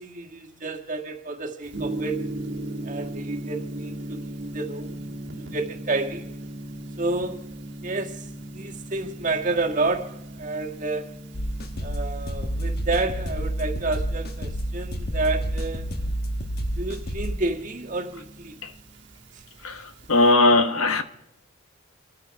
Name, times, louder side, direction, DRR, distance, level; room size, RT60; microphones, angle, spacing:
voice 1, 0.0-2.2 2.8-6.3 7.0-7.5 7.8-11.1 11.8-15.9 16.8-18.6 19.3-19.4, right 3 dB, 35° right, 1.7 m, -30 dB
Gong, 1.7-20.3, right 1 dB, 50° right, 1.7 m, -38 dB
sound 1, 11.3-17.4, equal, 45° left, 1.3 m, -29 dB
voice 2, 19.6-21.0, left 2 dB, 75° left, 1.2 m, -19 dB
27.5 x 9.4 x 4.7 m
head